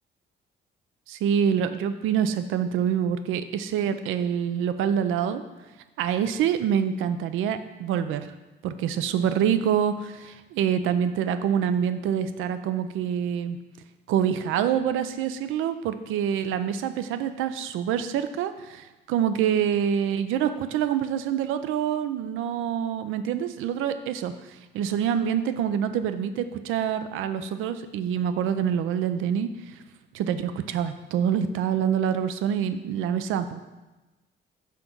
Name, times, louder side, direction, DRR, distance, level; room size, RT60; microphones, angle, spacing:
voice 1, 1.1-5.4 6.0-8.3 8.6-13.6 14.1-29.8 30.1-33.6, right 8 dB, 90° right, 10 dB, 0.5 m, -26 dB
5.8 x 3.9 x 6.0 m, 1.1 s
cardioid pair, 90°, 20 cm